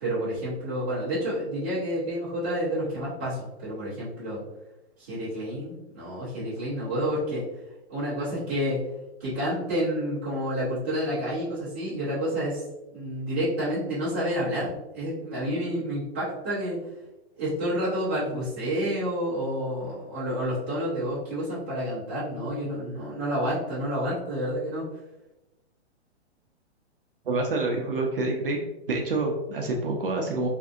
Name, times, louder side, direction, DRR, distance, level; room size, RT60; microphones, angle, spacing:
voice 1, 0.0-4.4 5.0-7.4 7.9-8.8 9.2-12.6 12.9-16.8 17.4-24.8, equal, 10° right, -12 dB, 0.6 m, -29 dB
voice 2, 27.3-28.6 28.9-30.5, right 2 dB, 55° right, 1 dB, 0.5 m, -27 dB
3.3 x 2.6 x 2.5 m, 0.97 s
hypercardioid pair, 180°, 34 cm